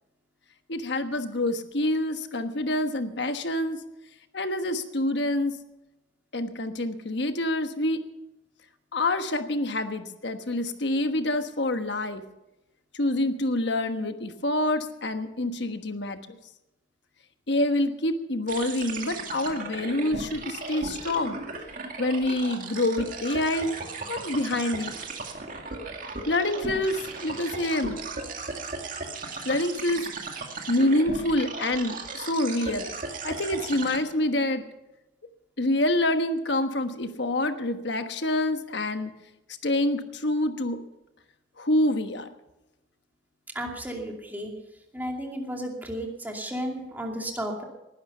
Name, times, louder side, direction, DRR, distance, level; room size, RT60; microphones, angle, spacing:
voice 1, 0.7-3.8 4.3-5.6 6.3-8.0 8.9-12.2 12.9-16.4 17.5-21.4 22.0-23.8 24.1-24.9 26.3-28.0 29.4-30.1 30.7-32.9 33.2-34.7 35.6-39.1 39.6-40.8 41.6-42.3, left 1 dB, 65° left, 8 dB, 1.3 m, -27 dB
sound 1, 18.5-34.0, right 3 dB, 45° right, 2.2 m, -36 dB
voice 2, 43.5-44.5 44.9-47.6, equal, 10° right, 1 dB, 2.6 m, -33 dB
19.5 x 11.5 x 5.7 m, 0.96 s
head